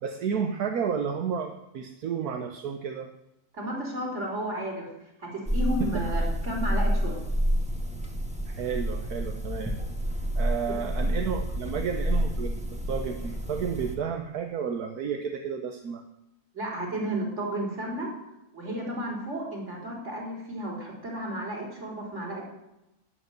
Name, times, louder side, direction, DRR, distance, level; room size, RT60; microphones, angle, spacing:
voice 1, 0.0-3.1 8.5-9.8 10.3-12.6 12.9-16.0, right 7 dB, 80° right, 5 dB, 1.5 m, -31 dB
voice 2, 3.5-4.9 5.2-7.3 10.6-10.7 16.5-18.1 18.5-22.5, right 1 dB, 50° right, -1 dB, 4.7 m, -33 dB
sound 1, 5.5-13.9, equal, 5° right, 1.5 m, -29 dB
12.0 x 9.5 x 9.3 m, 0.90 s
omnidirectional pair, 1.6 m